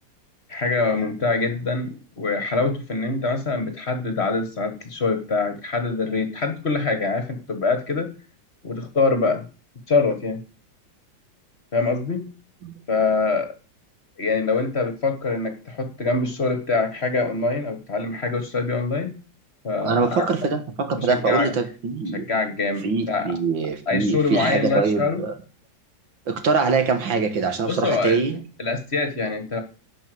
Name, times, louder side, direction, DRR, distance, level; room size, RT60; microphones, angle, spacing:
voice 1, 0.5-8.1 8.6-9.5 9.9-10.4 11.7-12.3 12.9-13.5 14.2-19.1 19.6-20.3 20.9-21.5 22.1-23.3 23.9-25.2 27.7-28.2 28.6-29.6, left 3 dB, 35° left, 1.6 m, -24 dB
voice 2, 19.8-22.3 22.8-25.3 26.3-28.4, right 4 dB, 80° right, 2.3 m, -23 dB
11.0 x 5.4 x 7.8 m
omnidirectional pair, 2.1 m